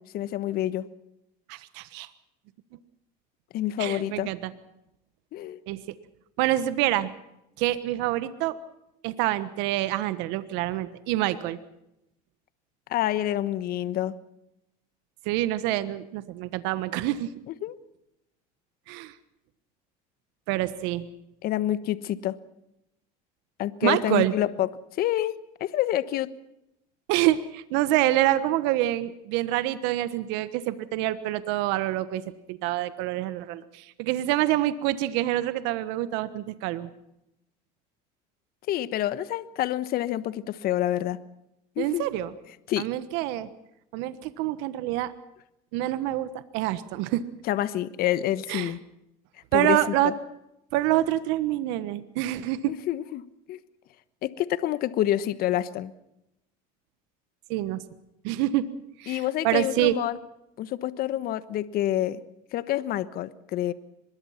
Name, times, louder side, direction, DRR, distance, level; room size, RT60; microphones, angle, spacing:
voice 1, 0.1-0.8 3.5-4.3 5.3-5.6 12.9-14.1 17.5-17.8 21.4-22.3 23.6-24.7 25.0-25.3 25.6-26.3 38.7-41.2 41.8-42.1 42.7-42.9 47.5-48.8 49.5-50.1 52.7-53.2 53.5-53.6 54.2-55.9 59.1-60.2 60.6-62.2 62.5-63.7, left 13 dB, 55° left, 15 dB, 1.3 m, -27 dB
voice 2, 1.5-2.1 3.8-4.5 5.7-5.8 6.4-7.1 7.6-8.6 9.0-11.6 15.2-17.3 18.9-19.1 20.5-21.1 23.8-24.3 27.1-32.2 32.5-36.9 41.8-42.3 42.8-43.5 43.9-45.1 45.7-47.2 48.5-48.7 49.5-50.1 50.7-52.7 57.5-57.8 58.2-58.7 59.0-59.9, right 15 dB, 75° right, 13 dB, 1.3 m, -26 dB
24.0 x 21.0 x 5.8 m, 0.84 s
supercardioid pair, 110°, 18 cm